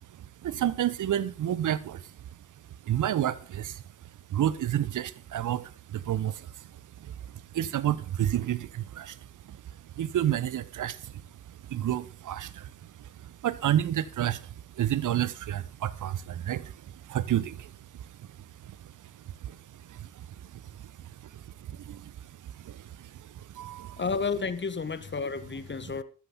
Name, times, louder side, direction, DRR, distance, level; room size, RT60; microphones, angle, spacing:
voice 1, 0.1-2.1 2.8-3.8 4.3-9.6 10.0-24.0 25.8-25.9, right 11 dB, 50° right, 1.1 m, -31 dB
voice 2, 24.0-26.0, left 5 dB, 25° left, 1.6 m, -31 dB
13.5 x 13.5 x 4.0 m
figure-of-eight pair, 40°, 40 cm